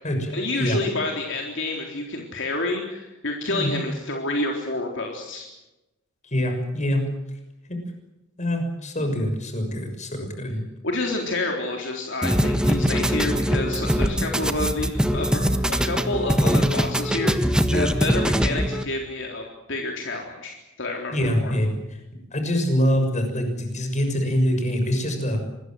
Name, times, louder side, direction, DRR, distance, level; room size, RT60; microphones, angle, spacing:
voice 1, 0.3-5.5 10.8-21.2 21.4-21.5, left 2 dB, 60° left, 1 dB, 3.8 m, -29 dB
voice 2, 6.2-7.1 7.7-7.8 8.4-10.6 21.1-22.0 22.3-25.4, equal, 35° left, 5 dB, 6.6 m, -24 dB
sound 1, 12.2-18.8, equal, 5° right, 1.3 m, -22 dB
26.5 x 21.5 x 7.8 m, 0.97 s
head